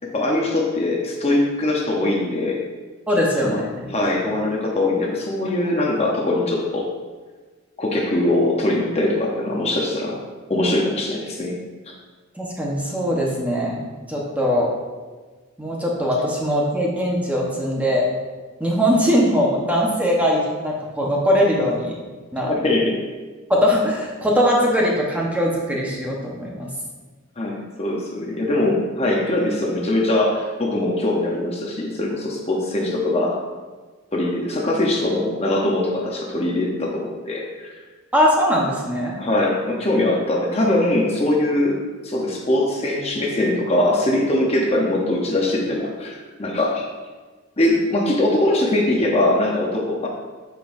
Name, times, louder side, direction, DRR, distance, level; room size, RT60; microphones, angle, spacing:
voice 1, 0.0-2.6 3.4-3.6 3.9-6.8 7.8-10.2 10.5-11.6 11.9-12.0 22.5-23.0 27.4-33.4 34.1-37.7 39.2-46.9 47.6-50.1, left 1 dB, 30° left, -1 dB, 0.8 m, -22 dB
voice 2, 3.1-3.9 12.3-14.7 15.6-18.1 18.6-21.9 22.3-22.5 23.5-26.7 38.1-39.1, equal, 5° right, -3 dB, 1.0 m, -21 dB
8.0 x 6.8 x 2.6 m, 1.4 s
head